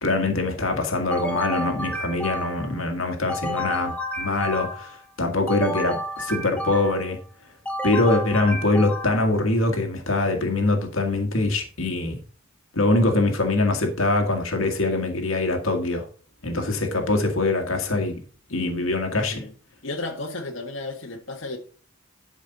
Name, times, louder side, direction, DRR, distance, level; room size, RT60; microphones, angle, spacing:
voice 1, 0.0-4.9 5.2-7.2 7.8-12.2 12.7-16.0 16.4-18.2 18.5-19.4, left 2 dB, 85° left, 1.9 m, -23 dB
sound 1, 1.1-2.8 3.3-5.0 5.5-7.1 7.6-9.4, left 1 dB, 5° left, 1.1 m, -31 dB
voice 2, 19.8-21.6, left 2 dB, 65° left, 1.8 m, -33 dB
12.0 x 5.3 x 4.1 m
head